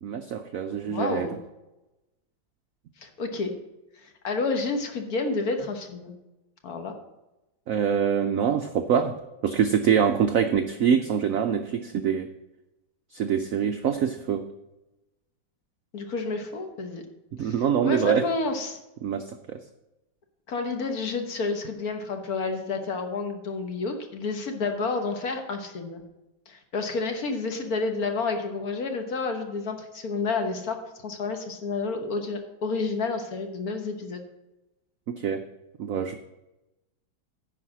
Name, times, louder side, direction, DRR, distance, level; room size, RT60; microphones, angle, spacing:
voice 1, 0.0-1.3 7.7-9.2 9.4-12.3 13.1-14.4 17.3-18.3 19.0-19.6 35.1-35.4 35.8-36.2, right 7 dB, 80° right, 7 dB, 0.7 m, -24 dB
voice 2, 0.8-1.4 3.0-3.5 4.0-6.1 6.6-7.0 15.9-17.0 17.4-17.5 17.8-18.8 20.5-26.0 26.5-34.2, left 4 dB, 50° left, 5 dB, 1.5 m, -30 dB
10.0 x 4.9 x 7.3 m, 0.99 s
omnidirectional pair, 2.1 m